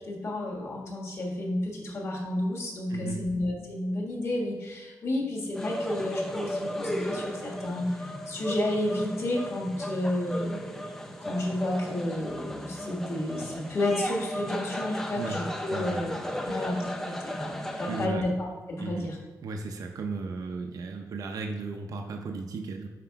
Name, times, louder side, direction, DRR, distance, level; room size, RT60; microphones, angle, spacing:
voice 1, 0.0-10.5 11.2-16.1 16.4-19.2, left 1 dB, 40° left, -2 dB, 1.3 m, -31 dB
voice 2, 2.9-3.3 15.1-16.0 16.3-16.7 17.9-18.3 18.8-19.1 19.4-22.9, right 4 dB, 55° right, 3 dB, 0.5 m, -36 dB
sound 1, 5.6-18.1, equal, 5° left, 0.5 m, -35 dB
5.9 x 4.8 x 4.6 m, 1.4 s
wide cardioid pair, 170°, 7 cm